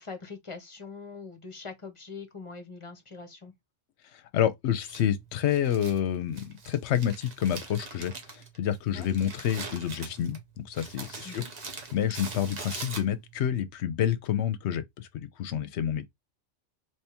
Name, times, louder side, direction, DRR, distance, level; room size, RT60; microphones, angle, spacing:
voice 1, 0.0-3.5 8.9-9.1 11.2-11.5, left 4 dB, 30° left, 0.8 m, -42 dB
voice 2, 4.3-11.5 11.9-16.1, left 10 dB, 70° left, 0.9 m, -28 dB
Crumpling crinkling, 4.8-13.5, right 4 dB, 40° right, 0.9 m, -43 dB
3.5 x 3.1 x 2.9 m
omnidirectional pair, 1.3 m